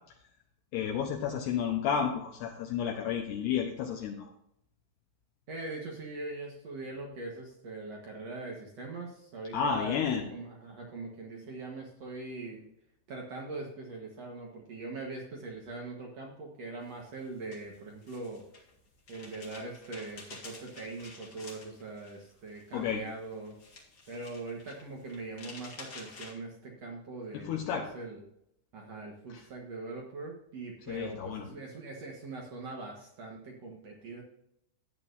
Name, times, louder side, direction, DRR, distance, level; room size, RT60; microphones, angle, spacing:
voice 1, 0.7-4.3 9.5-10.3 22.7-23.0 27.3-27.9 29.3-29.4 30.9-31.5, left 7 dB, 75° left, 1 dB, 2.8 m, -31 dB
voice 2, 5.5-12.6 13.1-18.4 19.1-23.6 24.1-28.2 28.7-34.2, right 3 dB, 70° right, 0 dB, 1.5 m, -42 dB
sound 1, 16.9-26.3, left 3 dB, 45° left, 1.4 m, -51 dB
13.0 x 9.1 x 2.7 m, 0.77 s
omnidirectional pair, 5.1 m